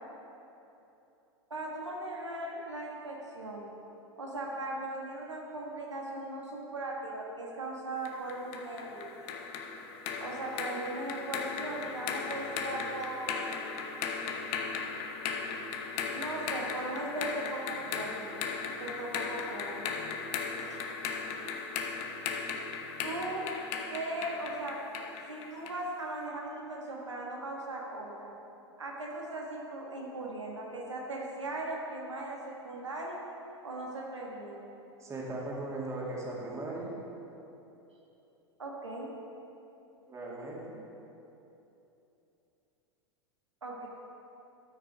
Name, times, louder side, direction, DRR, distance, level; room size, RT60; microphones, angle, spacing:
voice 1, 1.5-3.6 4.2-9.1 10.2-13.6 16.1-18.4 18.6-19.9 20.6-20.8 23.0-23.5 23.9-24.8 25.3-28.3 28.8-32.4 32.6-33.2 33.6-34.6 38.6-39.1 43.6-43.9, right 2 dB, 85° right, -2 dB, 1.5 m, -38 dB
sound 1, 8.1-25.9, left 5 dB, 45° left, 0.9 m, -37 dB
voice 2, 35.0-36.9 40.1-40.8, right 2 dB, 20° right, -4 dB, 2.2 m, -38 dB
13.0 x 5.9 x 4.8 m, 2.9 s
figure-of-eight pair, 90°, 15 cm